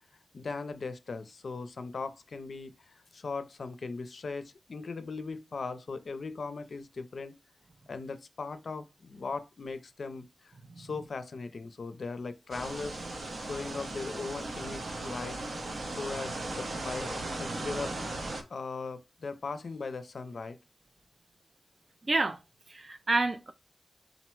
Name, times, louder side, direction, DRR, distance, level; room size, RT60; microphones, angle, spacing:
voice 1, 0.3-7.3 7.9-13.0 13.4-15.4 15.9-18.0 18.5-20.6, left 4 dB, 65° left, 0.4 m, -39 dB
sound 1, 12.5-18.4, right 2 dB, 65° right, 0.8 m, -37 dB
voice 2, 22.0-22.4 22.7-23.5, right 3 dB, 35° right, 0.3 m, -29 dB
3.8 x 2.1 x 4.4 m
wide cardioid pair, 135°, 0 cm